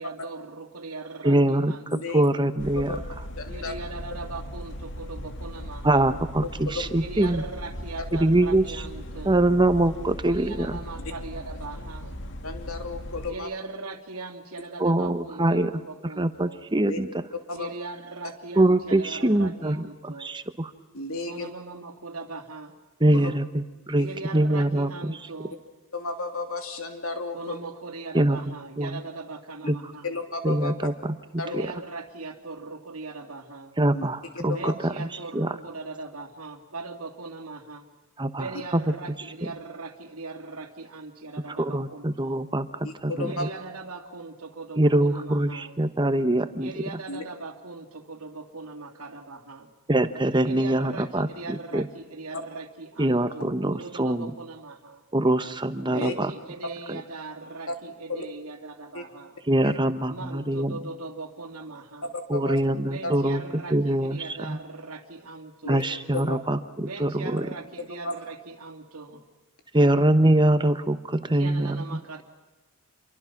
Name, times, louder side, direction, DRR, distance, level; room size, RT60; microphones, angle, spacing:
voice 1, 0.0-2.2 3.5-6.0 6.9-9.4 10.2-12.1 13.2-16.6 17.5-20.3 21.3-22.7 23.1-23.3 24.0-25.6 27.3-30.1 31.4-33.8 34.5-37.9 38.3-42.4 43.2-45.7 46.6-49.7 50.4-55.0 55.9-59.4 60.1-62.1 62.8-65.9 66.8-69.3 71.3-72.2, right 3 dB, 85° right, 5 dB, 2.6 m, -40 dB
voice 2, 1.2-3.0 5.8-7.4 8.1-8.8 9.2-10.8 14.8-15.7 16.0-17.1 18.6-20.7 23.0-25.2 28.1-29.0 29.7-29.8 30.4-31.7 33.8-35.6 38.2-38.8 41.5-43.5 44.8-46.7 49.9-51.9 53.0-54.3 55.1-56.3 56.9-57.0 59.5-60.8 62.3-63.4 63.7-64.6 65.7-67.5 69.7-72.0, right 1 dB, 20° right, 10 dB, 1.1 m, -24 dB
voice 3, 1.9-2.2 2.9-3.0 3.4-3.7 6.7-6.8 12.4-13.5 16.9-17.0 17.5-17.7 20.9-21.5 23.1-23.3 25.9-27.6 30.0-30.7 31.4-31.7 33.9-34.1 34.3-34.7 42.8-43.4 47.1-47.2 56.0-56.1 57.7-57.8 58.1-58.2 58.9-59.0 59.6-59.8 62.1-62.6 63.0-63.1 65.6-65.8 66.1-66.4 68.0-68.1 69.8-69.9, left 3 dB, 75° left, 5 dB, 3.0 m, -33 dB
sound 1, 2.6-13.3, equal, 55° left, 2.0 m, -38 dB
28.0 x 23.5 x 6.1 m, 1.2 s
head